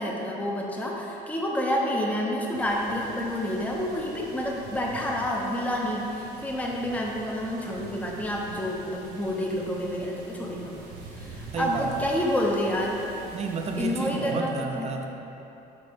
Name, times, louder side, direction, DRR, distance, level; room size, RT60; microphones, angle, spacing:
voice 1, 0.0-10.7 11.2-13.0 13.8-14.9, equal, 10° left, -2 dB, 0.7 m, -29 dB
sound 1, 2.5-14.1, right 3 dB, 80° right, 1.3 m, -45 dB
voice 2, 11.5-11.9 13.3-15.1, right 4 dB, 40° right, 4 dB, 0.6 m, -31 dB
7.7 x 4.3 x 3.5 m, 3.0 s
cardioid pair, 110°, 17 cm